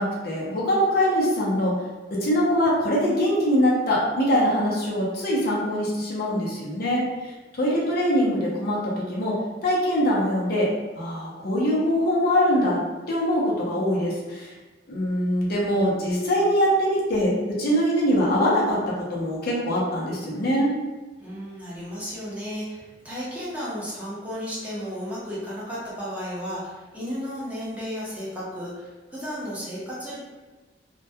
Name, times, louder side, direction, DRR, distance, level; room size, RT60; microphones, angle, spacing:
voice 1, 0.0-1.8 2.2-9.4 9.6-10.7 11.0-12.8 13.1-14.5 14.9-20.7, equal, 55° left, -4 dB, 0.6 m, -23 dB
voice 2, 21.2-30.2, equal, 10° right, -9 dB, 0.6 m, -34 dB
2.2 x 2.1 x 2.7 m, 1.2 s
head